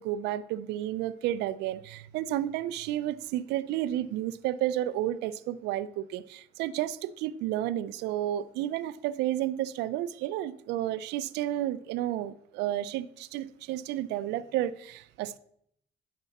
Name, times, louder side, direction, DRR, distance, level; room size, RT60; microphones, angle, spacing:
voice 1, 0.0-15.4, right 13 dB, 85° right, 0.5 m, -31 dB
9.1 x 6.9 x 4.1 m
cardioid pair, 110°, 17 cm